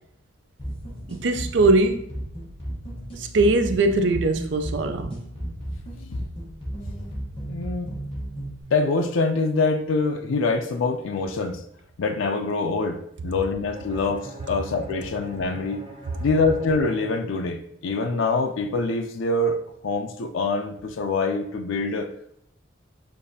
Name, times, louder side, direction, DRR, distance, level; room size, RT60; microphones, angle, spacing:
sound 1, 0.6-8.6, equal, 30° left, 1.1 m, -34 dB
voice 1, 1.1-2.0 3.2-5.2, right 2 dB, 70° right, 7 dB, 0.4 m, -21 dB
voice 2, 7.5-7.9 8.7-11.6 12.0-15.8 16.2-19.6 19.8-22.1, left 3 dB, 85° left, 5 dB, 0.4 m, -25 dB
Bowed string instrument, 13.7-17.8, right 2 dB, 25° right, 0.7 m, -42 dB
6.6 x 2.5 x 2.7 m, 0.71 s
head